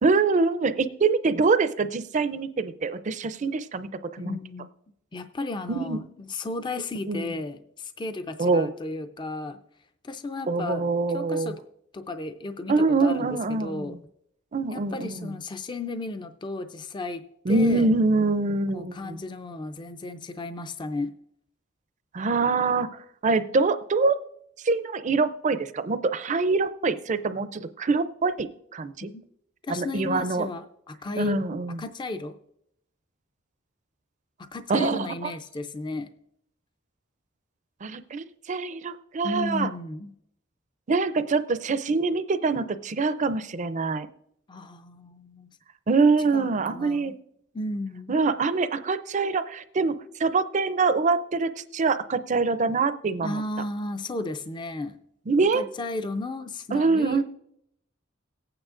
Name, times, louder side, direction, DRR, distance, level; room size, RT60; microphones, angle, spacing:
voice 1, 0.0-4.4 5.7-6.0 7.1-7.3 8.4-8.7 10.5-11.5 12.7-14.0 14.5-15.3 17.5-19.2 22.1-24.2 24.6-29.1 29.7-30.5 31.2-31.8 34.7-35.3 37.8-39.7 40.9-44.1 45.9-47.1 48.1-53.4 55.3-55.6 56.7-57.2, right 4 dB, 35° right, 12 dB, 0.4 m, -24 dB
voice 2, 4.2-4.7 5.1-9.6 10.0-10.9 11.1-11.6 11.9-14.0 14.7-17.9 18.7-21.1 29.0-29.2 29.7-31.4 31.8-32.4 34.4-36.1 39.2-40.1 44.5-45.5 46.3-47.1 47.5-48.1 53.2-55.0 55.5-57.2, left 2 dB, 20° left, 10 dB, 0.4 m, -34 dB
18.0 x 8.8 x 2.5 m, 0.76 s
head